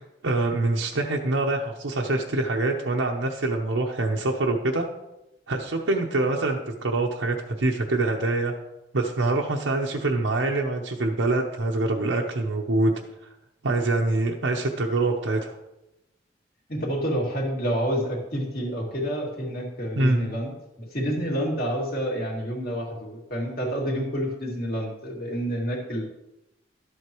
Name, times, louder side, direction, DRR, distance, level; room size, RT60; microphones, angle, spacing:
voice 1, 0.2-4.9 5.5-8.5 8.9-12.9 13.6-15.6 20.0-20.2, right 2 dB, 90° right, 0 dB, 0.8 m, -25 dB
voice 2, 16.7-20.5 20.8-26.0, equal, 50° left, -2 dB, 2.4 m, -28 dB
12.0 x 7.9 x 3.1 m, 0.92 s
head